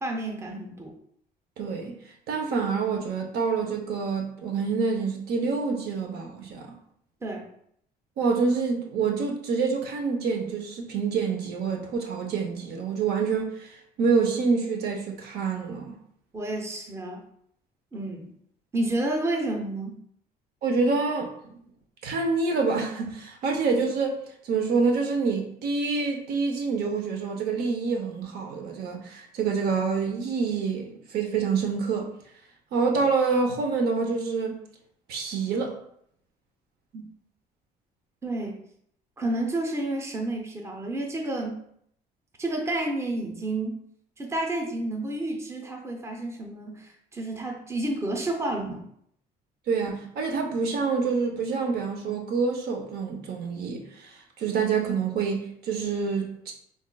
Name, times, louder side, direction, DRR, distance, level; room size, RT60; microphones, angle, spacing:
voice 1, 0.0-0.9 7.2-7.5 16.3-17.2 17.9-18.3 18.7-20.0 36.9-37.0 38.2-38.6 39.2-41.6 42.4-43.8 44.2-48.8, right 1 dB, 15° right, 2 dB, 0.6 m, -30 dB
voice 2, 1.6-2.0 2.3-6.7 8.2-16.0 20.6-21.6 22.0-24.2 24.4-32.1 32.7-34.6 35.1-35.7 49.7-56.5, right 4 dB, 70° right, 3 dB, 0.7 m, -27 dB
5.1 x 2.4 x 2.2 m, 0.69 s
cardioid pair, 110°, 17 cm